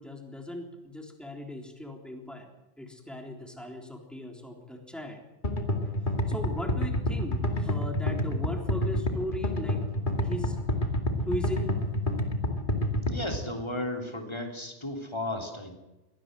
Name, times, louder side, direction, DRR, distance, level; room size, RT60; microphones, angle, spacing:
voice 1, 0.0-2.5 2.8-5.2 6.3-10.6 11.2-11.7, left 1 dB, ahead, 2 dB, 3.7 m, -38 dB
sound 1, 5.4-13.4, equal, 50° left, 2.4 m, -28 dB
voice 2, 13.1-15.8, left 1 dB, 25° left, 3 dB, 3.4 m, -34 dB
23.0 x 17.0 x 7.9 m, 1.0 s
omnidirectional pair, 1.1 m